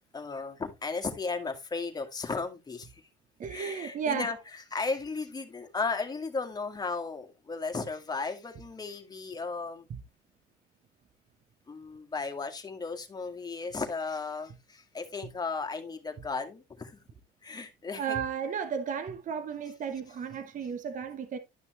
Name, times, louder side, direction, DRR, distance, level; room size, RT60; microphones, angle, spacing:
voice 1, 0.1-3.0 3.4-4.4 4.7-9.9 11.7-16.9 17.4-18.2, left 4 dB, 25° left, 2.0 m, -35 dB
voice 2, 3.4-4.3 9.9-10.0 18.0-21.4, right 7 dB, 50° right, 1.2 m, -34 dB
12.0 x 5.9 x 3.1 m
cardioid pair, 110°, 17 cm